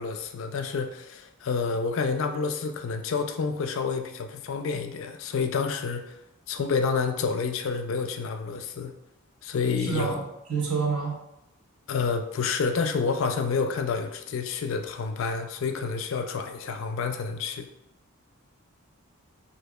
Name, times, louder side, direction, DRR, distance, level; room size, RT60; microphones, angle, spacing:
voice 1, 0.0-6.2 6.5-8.9 9.4-10.1 11.9-17.7, left 5 dB, 60° left, 7 dB, 0.3 m, -29 dB
voice 2, 9.8-10.2 10.5-11.2, right 5 dB, 80° right, -2 dB, 1.0 m, -27 dB
4.6 x 2.7 x 2.2 m, 0.86 s
head